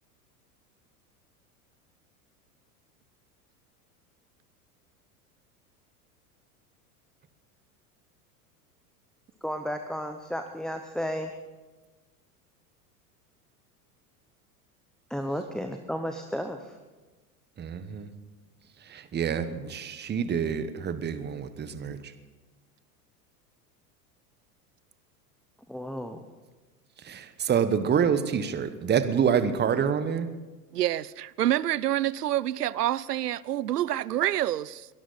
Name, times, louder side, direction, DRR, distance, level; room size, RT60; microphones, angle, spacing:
voice 1, 9.4-11.3 15.1-16.8 25.7-26.2, equal, ahead, 0.8 m, -33 dB
voice 2, 17.6-18.1 18.8-22.1 27.0-30.3, right 7 dB, 20° right, 1.1 m, -27 dB
voice 3, 30.7-34.9, right 13 dB, 90° right, 0.5 m, -27 dB
22.5 x 12.5 x 4.1 m
hypercardioid pair, 90°, 46 cm